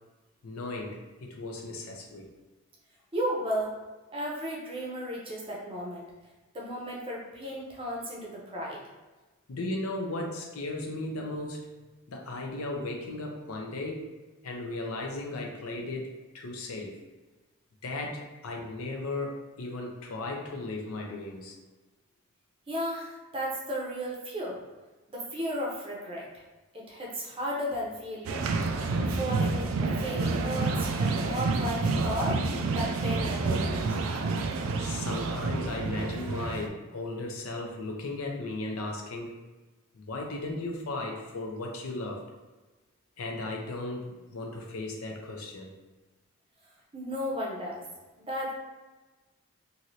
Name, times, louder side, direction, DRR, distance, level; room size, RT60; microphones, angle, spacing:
voice 1, 0.4-2.3 9.5-11.7 12.1-14.0 14.4-16.1 16.3-17.0 17.8-21.5 34.8-39.4 39.9-42.2 43.2-45.7, left 2 dB, 80° left, 1 dB, 0.6 m, -36 dB
voice 2, 3.1-3.8 4.1-6.1 6.5-8.8 22.7-24.6 25.1-26.3 26.7-28.5 29.2-34.3 46.9-47.8 48.2-48.5, equal, 25° right, -3 dB, 0.6 m, -34 dB
sound 1, 28.3-36.7, right 3 dB, 70° right, 0.3 m, -29 dB
3.1 x 2.6 x 2.7 m, 1.2 s
head